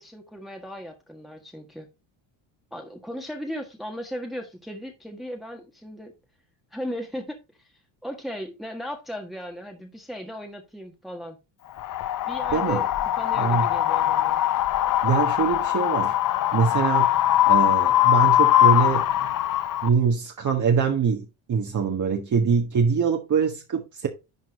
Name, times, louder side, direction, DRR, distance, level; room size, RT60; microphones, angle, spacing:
voice 1, 0.0-1.9 2.7-6.1 6.7-7.4 7.6-7.7 8.0-11.4 12.3-14.4, equal, ahead, 1.5 m, -36 dB
Wind, 11.8-19.9, left 13 dB, 45° left, 0.7 m, -21 dB
voice 2, 12.5-12.8 13.4-13.7 15.0-16.1 16.5-17.1 17.5-19.1 19.8-24.1, right 6 dB, 40° right, 1.5 m, -23 dB
11.0 x 4.5 x 4.2 m
cardioid pair, 110°, 47 cm